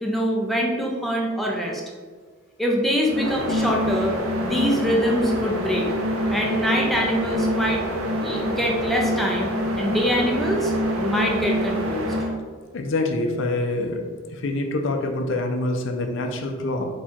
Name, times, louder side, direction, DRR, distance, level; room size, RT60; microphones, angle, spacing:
voice 1, 0.0-1.8 2.6-4.1 4.4-5.9 6.3-7.8 8.2-12.1, equal, ahead, -1 dB, 0.5 m, -24 dB
sound 1, 3.0-12.3, equal, 75° right, 0.6 m, -25 dB
voice 2, 12.7-14.0 14.3-16.9, left 2 dB, 60° left, 3 dB, 0.5 m, -25 dB
4.4 x 2.3 x 4.3 m, 1.5 s
head